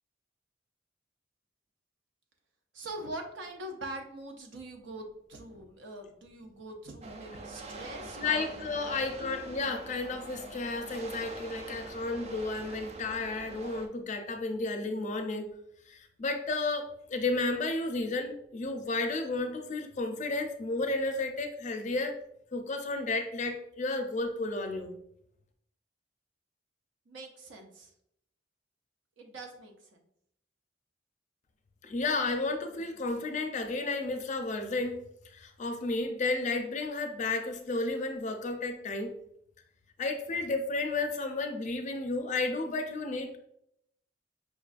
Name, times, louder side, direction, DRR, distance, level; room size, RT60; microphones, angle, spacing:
voice 1, 2.7-9.4 27.1-27.9 29.2-30.0, right 2 dB, 80° right, 3 dB, 0.6 m, -43 dB
sound 1, 7.0-13.9, right 2 dB, 35° right, 0.4 m, -45 dB
voice 2, 8.2-15.5 15.9-22.2 22.5-24.9 31.8-39.1 40.0-43.4, left 3 dB, 40° left, 5 dB, 0.4 m, -32 dB
5.1 x 2.3 x 2.4 m, 0.74 s
head